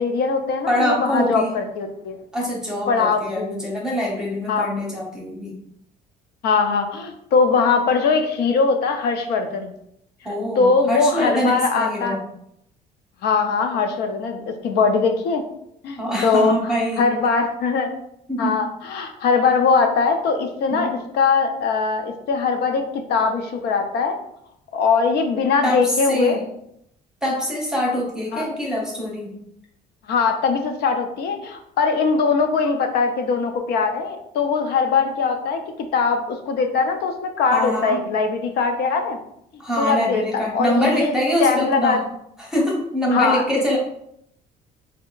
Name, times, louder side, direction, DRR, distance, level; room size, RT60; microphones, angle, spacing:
voice 1, 0.0-2.1 2.9-3.6 4.5-4.7 6.4-9.7 10.6-12.2 13.2-15.4 15.8-16.6 17.0-17.9 18.4-24.1 24.7-26.4 28.3-28.4 30.1-35.6 35.9-39.2 39.8-41.1 41.4-42.0 43.1-43.4, left 5 dB, 75° left, 5 dB, 0.6 m, -21 dB
voice 2, 0.7-1.5 2.3-5.5 10.2-12.2 15.9-17.1 18.3-18.6 20.7-20.9 25.6-26.4 27.2-29.3 37.5-38.0 39.6-42.0 42.4-43.8, equal, 5° right, -3 dB, 0.8 m, -24 dB
3.4 x 2.7 x 2.3 m, 0.74 s
cardioid pair, 110°, 17 cm